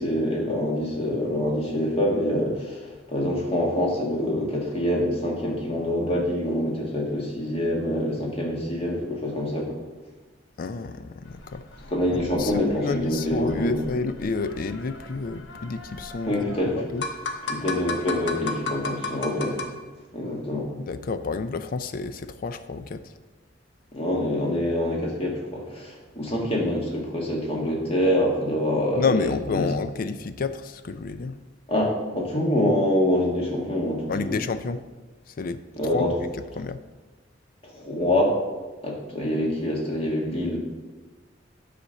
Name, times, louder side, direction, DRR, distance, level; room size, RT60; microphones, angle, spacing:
voice 1, 0.0-9.7 11.9-13.8 16.3-16.8 17.5-19.6 20.1-20.7 23.9-29.7 31.7-34.4 35.8-36.1 37.6-38.4 38.8-40.6, left 1 dB, 35° left, -1 dB, 1.8 m, -25 dB
voice 2, 10.6-11.9 12.4-17.1 20.8-23.1 29.0-31.4 34.1-34.8 35.3-36.1 36.6-36.8, left 4 dB, 50° left, 11 dB, 0.4 m, -30 dB
sound 1, 11.2-19.7, left 3 dB, 80° left, 1.0 m, -36 dB
10.0 x 4.3 x 6.5 m, 1.2 s
head